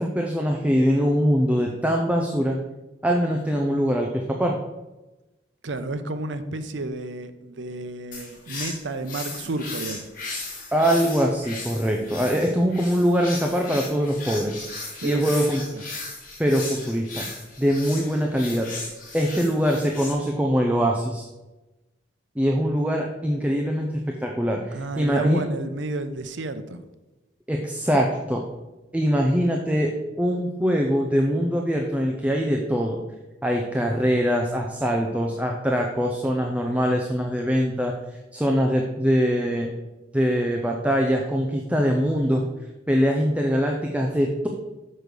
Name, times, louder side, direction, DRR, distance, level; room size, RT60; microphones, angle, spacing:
voice 1, 0.0-2.6 3.0-4.6 10.7-15.6 16.4-17.2 17.6-18.7 19.1-21.3 22.4-25.4 27.5-28.4 28.9-33.0 33.4-39.7 40.1-42.5 42.9-44.5, equal, 10° right, 1 dB, 0.6 m, -23 dB
voice 2, 5.6-10.0 15.0-15.2 15.7-15.8 24.7-26.8, right 2 dB, 90° right, 10 dB, 0.7 m, -31 dB
sound 1, 8.1-20.1, left 3 dB, 50° left, 2.1 m, -36 dB
6.5 x 6.3 x 5.2 m, 1.1 s
head